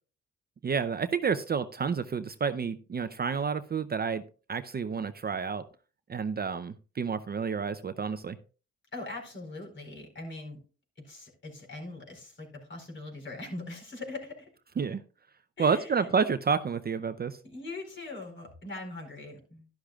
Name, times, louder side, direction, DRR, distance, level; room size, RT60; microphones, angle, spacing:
voice 1, 0.6-4.2 4.5-5.6 6.1-8.4 14.8-15.0 15.6-17.4, right 6 dB, 30° right, 11 dB, 0.6 m, -29 dB
voice 2, 8.9-10.6 11.0-14.5 15.6-16.1 17.4-19.7, left 2 dB, 40° left, 2 dB, 4.5 m, -41 dB
12.0 x 11.5 x 2.4 m, 0.36 s
cardioid pair, 90°, 30 cm